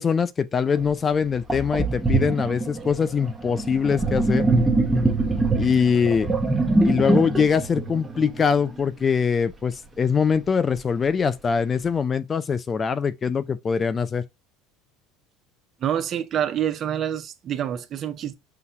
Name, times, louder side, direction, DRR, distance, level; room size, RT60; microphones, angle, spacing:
voice 1, 0.0-4.4 5.6-6.3 6.8-14.2, left 6 dB, 25° left, 0.3 m, -23 dB
Sink (filling or washing), 0.8-0.9 1.5-8.8, right 2 dB, 10° right, 0.9 m, -23 dB
voice 2, 15.8-18.3, right 10 dB, 40° right, 0.6 m, -27 dB
5.6 x 2.2 x 2.8 m
supercardioid pair, 115°, 0 cm